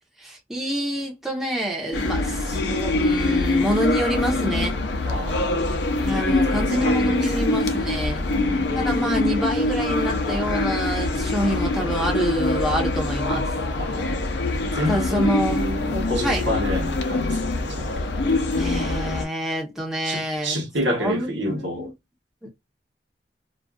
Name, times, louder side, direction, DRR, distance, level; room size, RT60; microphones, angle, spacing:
voice 1, 0.2-4.8 6.0-8.3 8.7-13.5 14.8-15.6 16.2-16.5 18.6-20.5 20.9-21.9, equal, ahead, 0.8 m, -27 dB
sound 1, 1.9-19.3, left 2 dB, 70° left, 0.5 m, -24 dB
voice 2, 5.0-5.6 6.5-7.2 8.2-8.8 13.8-14.3 14.6-17.9 20.0-21.9, equal, 85° right, 1.1 m, -29 dB
2.5 x 2.3 x 2.3 m
head